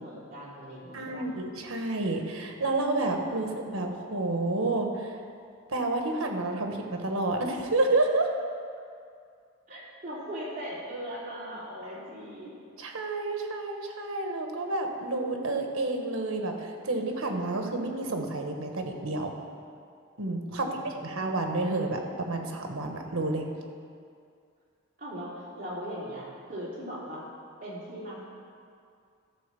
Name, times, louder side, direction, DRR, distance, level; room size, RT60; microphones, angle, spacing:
voice 1, 0.0-1.3 9.7-12.5 20.5-21.3 25.0-27.2 27.6-28.2, equal, 40° right, -7 dB, 3.0 m, -39 dB
voice 2, 0.9-5.2 5.7-8.3 12.8-19.3 20.2-23.5, right 2 dB, 90° right, 3 dB, 1.3 m, -30 dB
13.0 x 4.5 x 6.9 m, 2.3 s
head